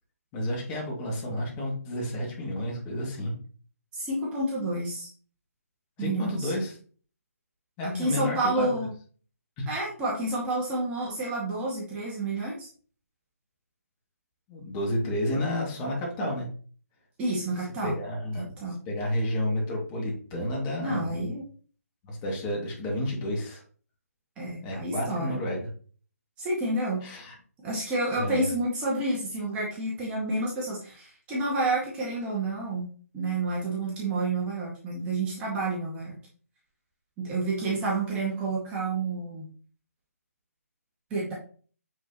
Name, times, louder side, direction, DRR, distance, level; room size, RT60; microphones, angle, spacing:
voice 1, 0.3-3.3 6.0-6.8 7.8-8.8 9.6-9.7 14.5-16.4 17.6-18.5 18.9-21.3 22.0-23.6 24.6-25.6 27.0-27.4 28.2-28.5, left 1 dB, 20° left, -1 dB, 2.4 m, -31 dB
voice 2, 3.9-5.1 6.0-6.5 7.8-8.9 9.7-12.7 17.2-17.9 18.4-18.8 20.8-21.4 24.4-25.4 26.4-27.0 27.6-32.9 33.1-36.2 37.2-39.5 41.1-41.3, right 2 dB, 15° right, -4 dB, 1.9 m, -29 dB
9.3 x 4.7 x 3.0 m, 0.42 s
figure-of-eight pair, 150°, 9 cm